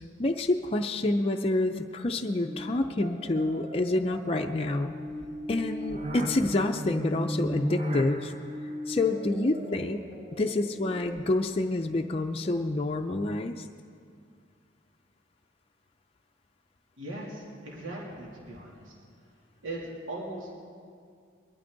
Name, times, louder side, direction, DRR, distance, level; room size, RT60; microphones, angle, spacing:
voice 1, 0.2-4.9 5.5-8.3 8.9-10.1 10.4-13.7, left 2 dB, 30° left, 3 dB, 0.5 m, -28 dB
sound 1, 2.4-11.5, equal, 35° right, 1.0 m, -36 dB
voice 2, 17.0-18.9 19.6-20.5, right 1 dB, 90° right, -4 dB, 3.0 m, -39 dB
22.0 x 12.5 x 3.9 m, 2.2 s
head